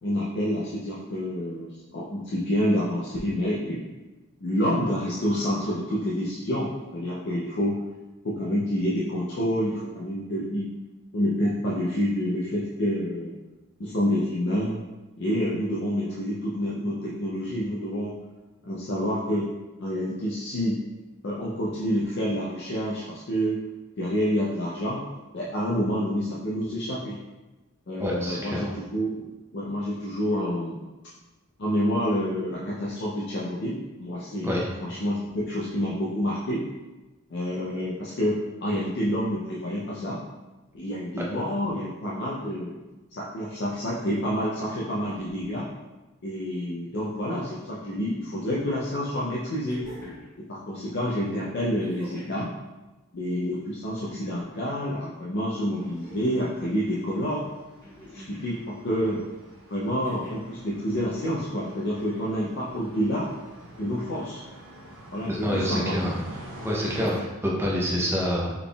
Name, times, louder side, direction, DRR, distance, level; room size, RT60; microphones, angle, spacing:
voice 1, 0.0-3.9 4.4-7.8 8.2-10.7 11.1-13.3 13.8-14.8 15.2-18.1 18.6-19.5 19.8-20.8 21.2-23.6 24.0-25.0 25.3-27.2 27.9-30.8 31.6-36.7 37.3-40.2 40.7-42.8 43.1-45.7 46.2-49.9 50.5-52.5 53.1-57.4 58.1-59.2 59.7-63.3 63.8-64.4 65.1-66.0, equal, 50° left, -6 dB, 0.5 m, -28 dB
voice 2, 28.0-28.7 34.4-34.7 65.3-66.1 66.6-68.5, equal, 10° right, -4 dB, 0.6 m, -27 dB
sound 1, 49.6-50.4 51.8-52.4 53.7-54.4 55.7-56.5 57.8-58.5 60.0-60.5 61.9-62.4 63.8-63.9, equal, 15° left, 1.3 m, -47 dB
sound 2, 55.8-67.2, right 1 dB, 65° right, 0.6 m, -46 dB
3.9 x 3.4 x 2.3 m, 1.1 s
head